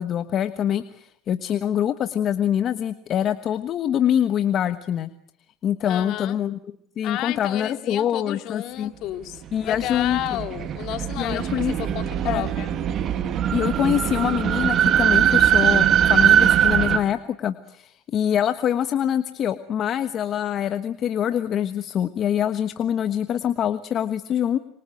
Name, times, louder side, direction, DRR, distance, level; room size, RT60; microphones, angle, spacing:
voice 1, 0.0-5.1 5.6-6.6 7.0-8.9 9.5-10.4 11.2-11.7 12.2-12.5 13.5-24.6, left 10 dB, 45° left, 9 dB, 1.3 m, -24 dB
voice 2, 5.8-6.4 7.0-12.7, left 14 dB, 60° left, 7 dB, 2.7 m, -32 dB
sound 1, 9.5-17.0, right 9 dB, 45° right, 2.3 m, -21 dB
Piano, 11.4-16.5, right 10 dB, 60° right, 4.1 m, -36 dB
28.0 x 25.0 x 7.8 m, 0.72 s
supercardioid pair, 115°, 0 cm